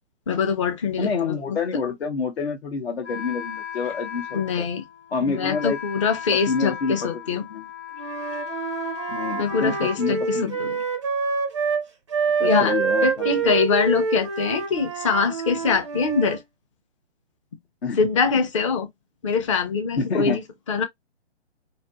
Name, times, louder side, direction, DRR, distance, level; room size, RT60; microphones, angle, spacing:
voice 1, 0.3-1.6 4.3-4.8 5.3-7.5 9.4-10.8 12.4-16.4 18.0-18.9 19.2-20.4 20.7-20.8, left 5 dB, 30° left, 0.5 m, -23 dB
voice 2, 1.0-4.7 5.1-5.8 6.5-7.7 9.1-10.6 12.4-13.5 17.8-18.0 20.0-20.4, left 5 dB, 70° left, 0.9 m, -28 dB
Wind instrument woodwind instrument, 3.0-10.8, left 8 dB, 85° left, 1.4 m, -37 dB
Wind instrument woodwind instrument 2, 7.9-11.8 12.1-16.4, right 5 dB, 30° right, 0.4 m, -26 dB
2.7 x 2.5 x 2.3 m
figure-of-eight pair, 140°, 34 cm